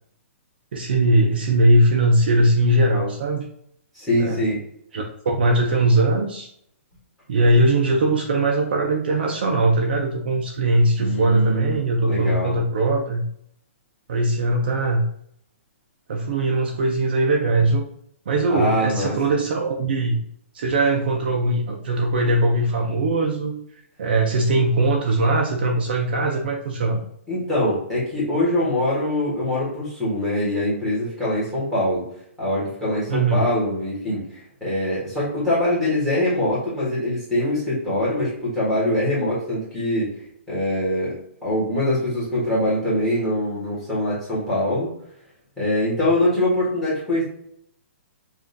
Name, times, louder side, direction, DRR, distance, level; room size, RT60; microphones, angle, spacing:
voice 1, 0.7-3.4 4.2-4.4 4.9-6.5 7.3-13.2 14.1-15.0 16.1-17.9 18.3-20.2 20.5-23.5 24.0-27.0 33.1-33.4, right 2 dB, 45° right, 2 dB, 0.5 m, -20 dB
voice 2, 3.9-4.6 11.0-12.6 18.5-19.1 27.3-32.0 32.4-40.1 40.5-41.1 41.4-44.9 45.6-47.2, left 1 dB, 5° left, -8 dB, 1.3 m, -23 dB
5.0 x 2.4 x 2.6 m, 0.69 s
hypercardioid pair, 175°, 7 cm